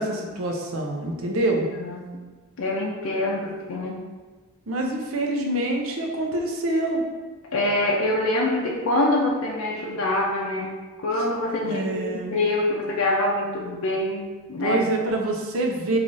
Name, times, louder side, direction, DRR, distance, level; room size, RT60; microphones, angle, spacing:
voice 1, 0.0-1.7 4.7-7.0 11.6-12.3 14.6-16.0, right 1 dB, 85° right, 2 dB, 0.5 m, -26 dB
voice 2, 2.6-4.0 7.5-10.7 11.0-14.8, left 1 dB, 85° left, -2 dB, 0.5 m, -25 dB
3.2 x 2.4 x 3.9 m, 1.3 s
head